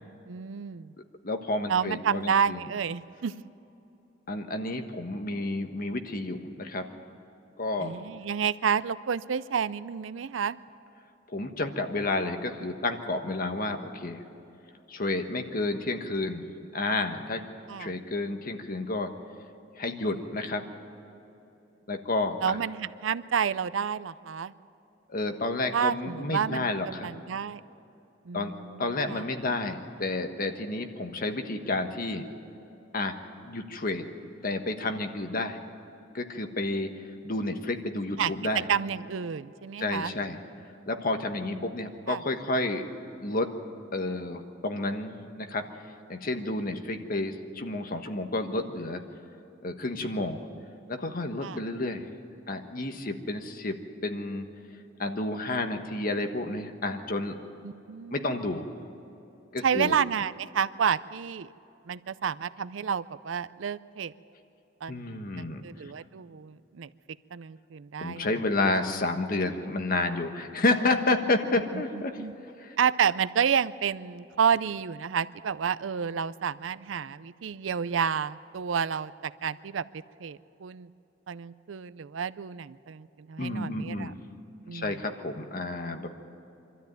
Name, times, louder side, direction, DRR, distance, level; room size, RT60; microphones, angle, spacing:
voice 1, 0.3-0.9 1.7-3.3 7.8-10.6 17.7-17.9 22.4-24.5 25.7-27.6 28.3-29.2 38.2-38.3 38.7-40.1 41.5-41.8 42.1-42.2 51.4-51.6 57.6-58.3 59.6-61.5 61.9-64.1 64.8-66.9 67.3-68.3 71.7-71.8 72.2-72.3 72.8-79.8 80.2-80.9 81.3-84.1 84.7-85.0, right 7 dB, 85° right, 16 dB, 0.5 m, -30 dB
voice 2, 1.2-2.7 4.3-6.9 7.6-8.0 11.3-14.2 14.9-17.4 17.8-19.1 19.8-20.6 21.9-22.6 25.1-27.1 28.3-28.5 28.8-32.3 32.9-33.1 33.4-34.0 34.4-35.6 36.1-36.9 37.2-38.7 39.8-40.4 40.9-42.9 43.2-43.5 43.9-45.6 46.1-49.0 49.6-50.4 50.9-52.1 52.5-54.5 55.0-57.4 58.1-58.7 59.5-60.0 64.9-65.6 68.0-72.1 72.6-72.7 83.4-84.2 84.7-86.1, left 2 dB, 50° left, 6 dB, 1.3 m, -30 dB
24.0 x 13.0 x 9.1 m, 2.9 s
head